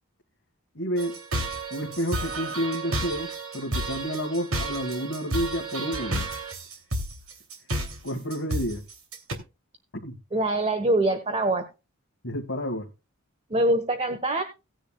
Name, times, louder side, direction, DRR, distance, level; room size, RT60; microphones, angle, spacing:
voice 1, 0.8-1.2 1.7-6.3 8.0-8.8 10.0-10.1 12.2-12.9, equal, 55° left, 1.8 m, -30 dB
sound 1, 1.0-9.3, right 1 dB, 70° right, 2.9 m, -31 dB
voice 2, 10.3-11.6 13.5-14.4, right 1 dB, 30° right, 1.3 m, -24 dB
17.5 x 9.9 x 2.3 m
head